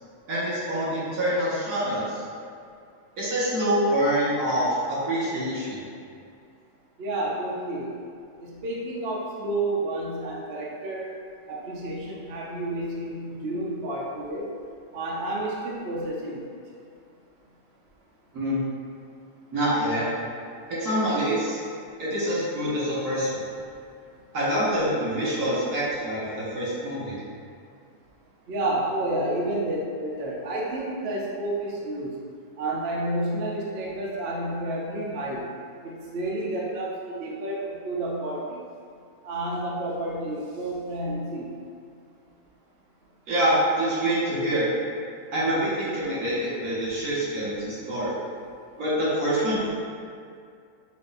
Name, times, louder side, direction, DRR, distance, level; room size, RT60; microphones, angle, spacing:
voice 1, 0.3-2.2 3.2-5.8 18.3-18.6 19.5-20.0 20.7-21.6 22.0-23.4 24.3-27.2 43.3-44.7 45.3-48.2 48.8-49.7, equal, 75° right, -9 dB, 2.0 m, -26 dB
voice 2, 7.0-8.0 8.4-11.1 11.5-14.5 14.9-16.5 28.5-32.1 32.6-35.5 35.8-38.6 39.2-41.5, right 1 dB, 55° right, -4 dB, 0.7 m, -30 dB
7.0 x 2.6 x 2.6 m, 2.4 s
omnidirectional pair, 1.6 m